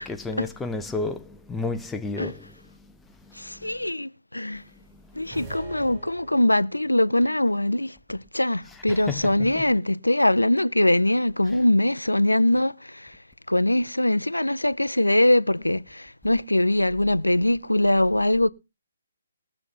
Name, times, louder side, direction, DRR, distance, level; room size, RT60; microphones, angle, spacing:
voice 1, 0.0-2.5 3.2-3.7 4.9-5.0 8.9-9.2 9.6-9.7, left 3 dB, 5° left, 0.7 m, -32 dB
voice 2, 3.3-4.6 5.1-13.2 13.5-18.5, left 1 dB, 85° left, 0.6 m, -22 dB
sound 1, 5.3-6.9, right 4 dB, 20° right, 7.4 m, -42 dB
21.5 x 7.2 x 3.8 m
figure-of-eight pair, 135°, 0 cm